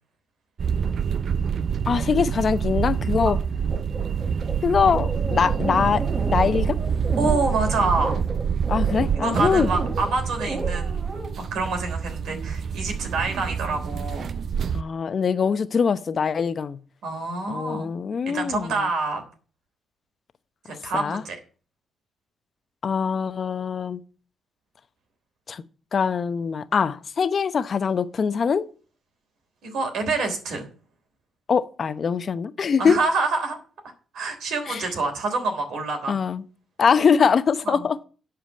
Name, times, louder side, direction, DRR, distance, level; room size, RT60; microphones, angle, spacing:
sound 1, 0.6-14.8, right 7 dB, 60° right, 0.5 m, -26 dB
voice 1, 1.9-3.4 4.6-6.8 8.7-9.7 14.7-16.8 17.5-18.7 20.9-21.2 22.8-24.0 25.5-25.6 25.9-28.6 31.5-33.0 34.7-34.8 36.1-36.4 36.8-38.0, left 6 dB, 55° left, 0.8 m, -23 dB
sound 2, 3.7-11.3, right 2 dB, 35° right, 5.2 m, -33 dB
voice 2, 7.2-8.2 9.2-11.0 11.4-14.3 17.0-17.9 18.3-19.2 20.7-21.4 29.6-30.7 32.8-33.6 34.1-36.2 37.6-37.9, right 3 dB, 80° right, 3.4 m, -27 dB
10.5 x 5.0 x 8.3 m
supercardioid pair, 55°, 0 cm